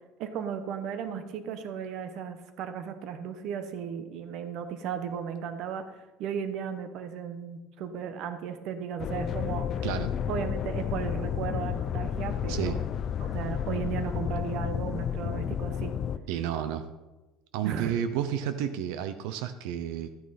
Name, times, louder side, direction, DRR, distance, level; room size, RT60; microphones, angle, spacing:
voice 1, 0.2-5.9 6.2-9.7 10.3-12.9 13.2-16.0 17.6-17.9, right 7 dB, 50° right, 9 dB, 1.0 m, -35 dB
sound 1, 9.0-16.2, left 9 dB, 35° left, 0.4 m, -31 dB
voice 2, 16.3-16.9 17.5-20.1, right 9 dB, 90° right, 10 dB, 0.7 m, -31 dB
13.5 x 9.3 x 4.2 m, 1.1 s
cardioid pair, 170°, 0 cm